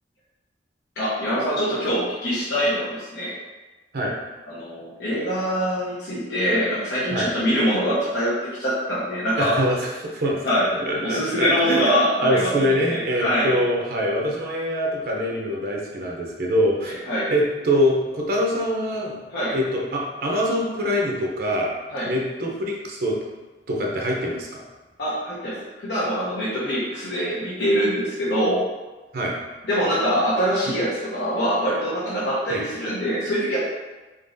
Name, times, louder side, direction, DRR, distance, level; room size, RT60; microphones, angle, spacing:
voice 1, 1.0-3.3 4.5-8.3 8.6-9.5 10.4-10.7 11.0-13.6 16.9-17.3 19.3-19.5 21.9-22.1 25.0-28.6 29.7-33.6, equal, 75° left, -10 dB, 1.1 m, -24 dB
voice 2, 9.4-19.1 19.5-21.7 22.1-23.2 23.7-24.6 29.1-29.4 32.5-32.6, equal, 60° right, -1 dB, 0.6 m, -24 dB
3.9 x 3.7 x 2.6 m, 1.2 s
head